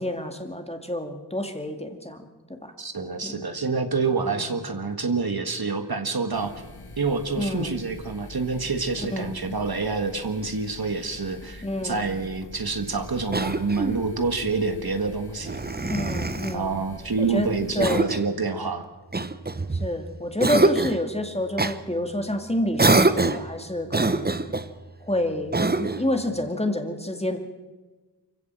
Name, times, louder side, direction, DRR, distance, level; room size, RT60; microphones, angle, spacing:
voice 1, 0.0-2.7 3.2-3.4 4.4-4.6 7.4-7.7 9.1-9.4 11.6-12.1 15.8-16.8 17.2-17.5 17.7-18.1 19.7-24.3 25.0-27.4, left 1 dB, 15° left, 5 dB, 2.3 m, -29 dB
voice 2, 2.8-6.5 7.0-15.9 16.5-18.9, right 4 dB, 60° right, 7 dB, 1.7 m, -27 dB
sound 1, 6.3-17.9, left 2 dB, 65° left, 2.0 m, -44 dB
Cough, 13.3-14.1 15.4-16.6 17.8-18.3 19.1-19.9 20.4-21.0 21.6-21.8 22.8-23.5 23.9-24.7 25.5-26.1, right 2 dB, 25° right, 0.9 m, -24 dB
25.0 x 16.0 x 7.6 m, 1.2 s
wide cardioid pair, 50°, 41 cm